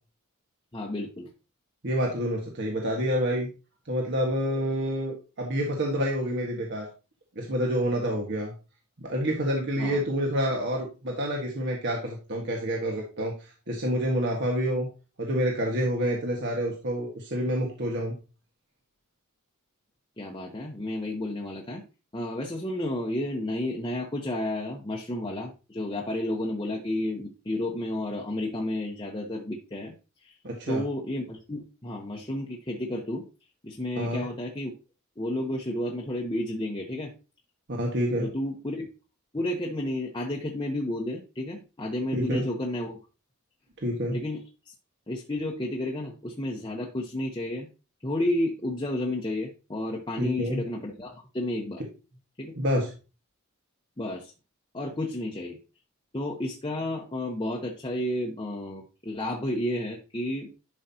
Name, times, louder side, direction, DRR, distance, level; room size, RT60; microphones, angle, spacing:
voice 1, 0.7-1.3 9.8-10.0 20.2-21.8 22.1-29.9 30.2-30.3 30.7-33.2 33.6-34.7 35.2-37.1 38.2-38.9 39.3-43.0 44.1-44.7 45.1-47.7 48.0-51.8 52.4-52.5 54.0-54.3 54.7-55.6 56.1-60.5, left 1 dB, 20° left, -1 dB, 1.0 m, -31 dB
voice 2, 1.8-3.5 3.8-6.9 7.3-8.5 9.0-14.9 15.2-18.1 30.4-30.8 33.9-34.2 37.7-38.3 42.1-42.4 43.8-44.2 50.2-50.6 52.6-52.9, equal, 55° right, -1 dB, 1.5 m, -28 dB
11.5 x 5.5 x 2.8 m, 0.32 s
head